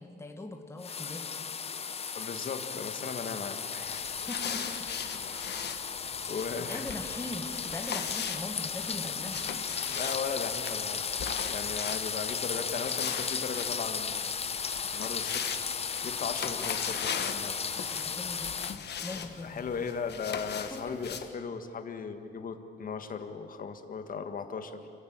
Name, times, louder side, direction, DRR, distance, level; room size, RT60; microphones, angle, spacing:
voice 1, 0.0-1.3 4.3-4.8 6.5-9.4 17.8-18.7 19.0-19.6 20.7-21.0, left 2 dB, 15° left, 4 dB, 1.7 m, -41 dB
sound 1, 0.8-18.8, left 6 dB, 35° left, 0.8 m, -35 dB
voice 2, 2.1-4.2 5.3-5.4 6.3-6.9 9.8-11.0 11.4-14.5 14.9-15.5 16.0-17.6 19.4-24.8, left 5 dB, 50° left, 7 dB, 1.7 m, -37 dB
sound 2, 3.8-21.3, left 7 dB, 65° left, 1.5 m, -40 dB
29.5 x 15.5 x 8.8 m, 2.5 s
wide cardioid pair, 175°, 19 cm